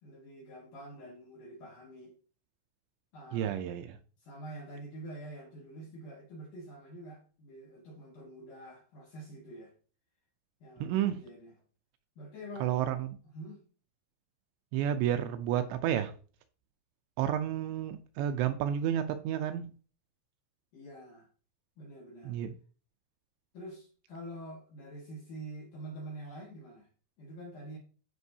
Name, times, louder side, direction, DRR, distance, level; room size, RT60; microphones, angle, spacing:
voice 1, 0.0-2.2 3.1-3.5 4.2-9.7 10.6-11.5 12.2-12.7 13.3-13.6 20.7-21.3 21.8-22.4 23.5-26.9 27.2-27.8, right 1 dB, 60° left, 2.2 m, -46 dB
voice 2, 3.3-4.0 10.8-11.2 12.6-13.1 14.7-16.1 17.2-19.7 22.3-22.5, right 10 dB, 80° right, 2.6 m, -31 dB
13.0 x 5.2 x 2.7 m
omnidirectional pair, 5.5 m